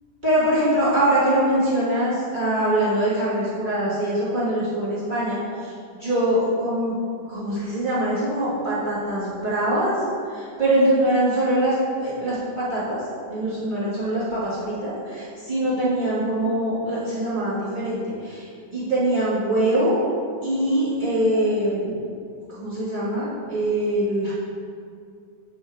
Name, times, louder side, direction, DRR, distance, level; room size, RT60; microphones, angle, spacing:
voice 1, 0.2-13.0 13.3-20.0 20.4-22.0 22.5-24.3, right 1 dB, 65° right, -11 dB, 0.4 m, -23 dB
8.3 x 4.6 x 4.5 m, 2.4 s
omnidirectional pair, 3.6 m